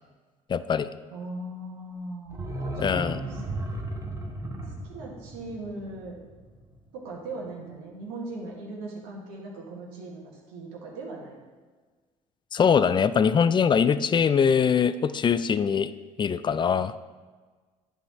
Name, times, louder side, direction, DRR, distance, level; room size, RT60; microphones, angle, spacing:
voice 1, 0.5-0.9 2.8-3.2 12.5-15.9 16.2-16.9, left 7 dB, 25° left, 14 dB, 0.4 m, -22 dB
voice 2, 1.1-2.4 2.7-3.4 4.8-6.2 6.9-11.4, right 2 dB, 80° right, -2 dB, 1.7 m, -39 dB
sound 1, 2.3-7.0 7.3-7.4, right 1 dB, 20° right, 1.2 m, -35 dB
10.0 x 3.9 x 4.2 m, 1.4 s
hypercardioid pair, 65°, 18 cm